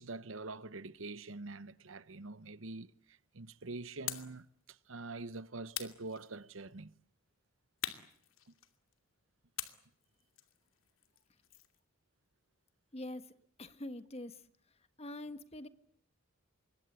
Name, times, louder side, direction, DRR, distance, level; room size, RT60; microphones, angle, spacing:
voice 1, 0.0-6.9, right 3 dB, 70° right, 1.0 m, -45 dB
sound 1, 4.1-4.4 5.7-6.7 7.8-8.9 9.6-11.8, left 11 dB, 80° left, 2.7 m, -44 dB
voice 2, 12.9-13.3 13.6-14.5 15.0-15.7, left 1 dB, 30° left, 1.5 m, -44 dB
26.5 x 23.5 x 8.2 m
head